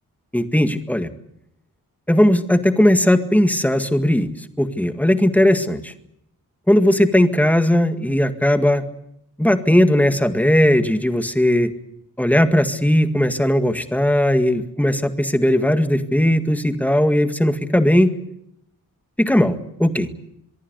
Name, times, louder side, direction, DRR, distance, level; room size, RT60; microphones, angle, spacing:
voice 1, 0.3-1.1 2.1-4.3 4.6-5.9 6.7-8.8 9.4-11.7 12.2-18.1 19.2-20.1, left 1 dB, 5° left, 8 dB, 1.9 m, -17 dB
25.0 x 22.5 x 8.2 m, 0.77 s
wide cardioid pair, 145°, 34 cm